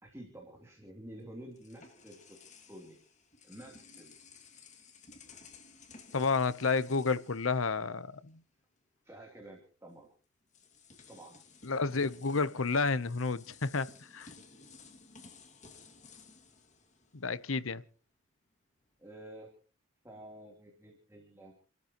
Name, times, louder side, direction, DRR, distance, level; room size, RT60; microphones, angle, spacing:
voice 1, 0.0-2.4 2.7-3.0 3.4-4.3 9.0-10.1 11.1-11.4 11.9-12.1 19.0-19.5 20.0-21.5, right 1 dB, 15° right, 3.3 m, -50 dB
sound 1, 1.1-8.3 8.6-8.8 9.9-10.0 10.5-17.6, left 4 dB, 35° left, 2.3 m, -56 dB
voice 2, 6.1-8.4 11.6-14.3 17.1-17.8, left 4 dB, 85° left, 0.9 m, -31 dB
30.0 x 13.5 x 3.0 m
head